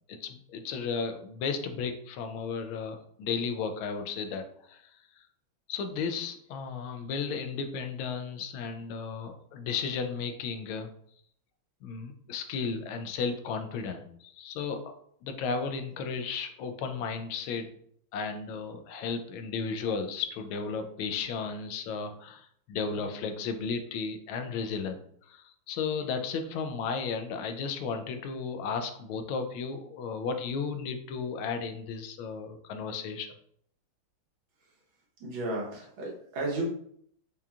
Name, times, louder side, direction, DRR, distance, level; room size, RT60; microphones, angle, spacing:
voice 1, 0.1-4.8 5.7-10.9 11.8-14.9 15.2-17.7 18.1-25.0 25.3-33.3, left 5 dB, 90° left, 7 dB, 1.4 m, -34 dB
voice 2, 35.2-36.6, right 2 dB, 80° right, -2 dB, 1.8 m, -33 dB
4.8 x 2.7 x 2.3 m, 0.66 s
omnidirectional pair, 2.2 m